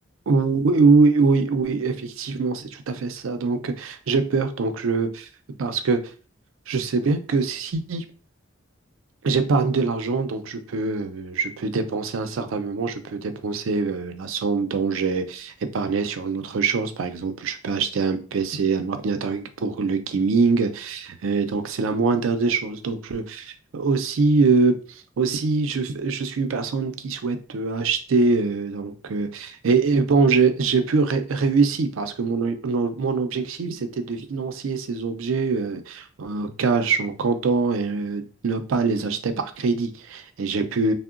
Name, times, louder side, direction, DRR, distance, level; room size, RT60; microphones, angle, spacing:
voice 1, 0.3-5.3 5.6-6.0 6.7-8.0 9.2-40.9, right 4 dB, 85° right, 0.4 m, -23 dB
3.6 x 2.0 x 2.4 m
head